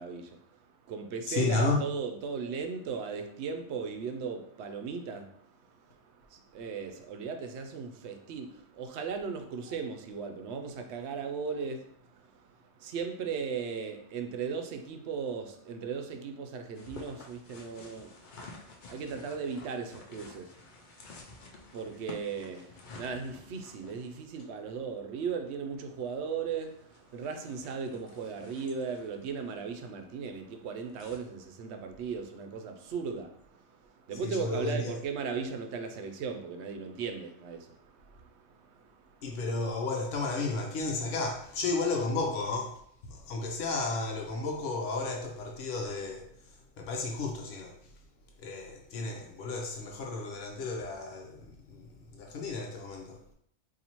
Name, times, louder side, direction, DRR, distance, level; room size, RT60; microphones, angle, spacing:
voice 1, 0.0-39.4, right 5 dB, 70° right, 0.8 m, -38 dB
voice 2, 1.3-1.8 34.2-34.9 39.2-42.8 43.1-46.3 46.8-47.7 48.4-53.2, left 3 dB, 90° left, 1.0 m, -33 dB
sound 1, 16.7-31.2, left 3 dB, 55° left, 0.6 m, -52 dB
4.1 x 2.7 x 2.9 m
omnidirectional pair, 1.2 m